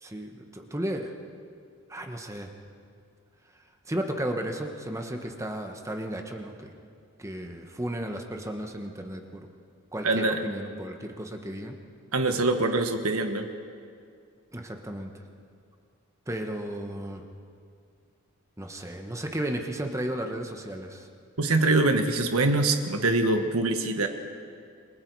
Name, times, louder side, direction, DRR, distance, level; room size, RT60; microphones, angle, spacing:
voice 1, 0.0-1.1 1.9-2.5 3.9-6.7 7.2-9.5 9.9-11.8 14.5-15.1 16.3-17.2 18.6-21.1, right 1 dB, 15° right, 4 dB, 1.3 m, -34 dB
voice 2, 10.0-10.4 12.1-13.4 21.4-24.1, right 2 dB, 80° right, 6 dB, 1.5 m, -24 dB
28.0 x 22.0 x 4.8 m, 2.2 s
head